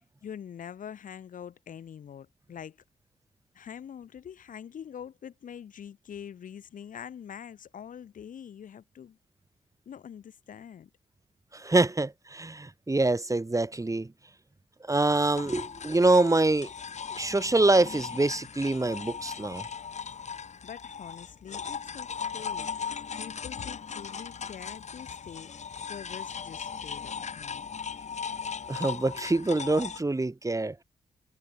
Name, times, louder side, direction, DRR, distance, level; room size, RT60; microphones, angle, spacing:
voice 1, 0.2-2.8 3.5-9.2 9.9-10.9 20.4-25.5 25.8-27.6, left 8 dB, 75° left, 7.6 m, -44 dB
voice 2, 11.5-14.1 14.9-16.7 17.2-19.7 28.7-30.8, right 2 dB, 25° right, 1.9 m, -25 dB
sound 1, 15.4-30.0, left 6 dB, 55° left, 2.1 m, -38 dB
supercardioid pair, 45°, 14 cm